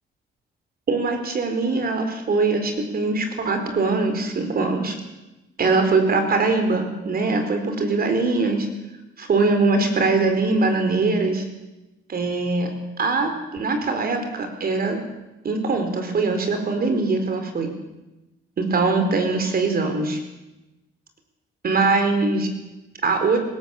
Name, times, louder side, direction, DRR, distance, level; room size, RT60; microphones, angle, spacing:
voice 1, 0.9-4.9 5.6-8.7 9.2-11.4 12.1-15.0 15.4-17.7 18.6-20.2 21.6-22.5 23.0-23.4, right 3 dB, 50° right, 6 dB, 4.6 m, -22 dB
19.5 x 18.5 x 7.4 m, 1.0 s
cardioid pair, 90°, 20 cm